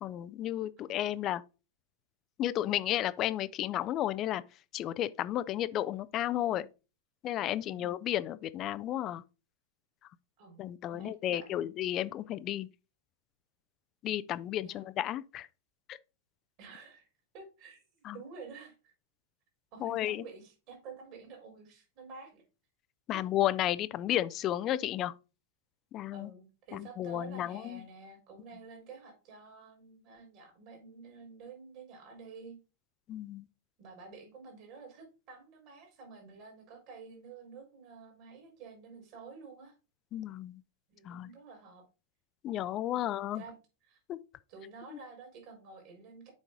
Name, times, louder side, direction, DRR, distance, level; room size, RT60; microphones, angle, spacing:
voice 1, 0.0-1.4 2.4-4.4 4.7-6.7 7.2-9.2 10.6-12.7 14.0-15.5 15.9-16.0 18.0-18.2 19.8-20.2 23.1-25.1 25.9-26.3 26.7-27.8 33.1-33.5 40.1-40.6 41.1-41.3 42.4-43.4 44.1-44.2, left 12 dB, 35° left, 0.5 m, -33 dB
voice 2, 10.9-11.7 14.6-14.8 16.6-17.0 17.3-17.8 18.1-18.9 19.7-22.4 23.1-23.2 26.1-32.6 33.8-39.7 40.9-41.8 42.9-43.6 43.8-44.0 44.5-46.3, right 4 dB, 45° right, 4.1 m, -50 dB
7.3 x 5.2 x 3.8 m
figure-of-eight pair, 90°, 0 cm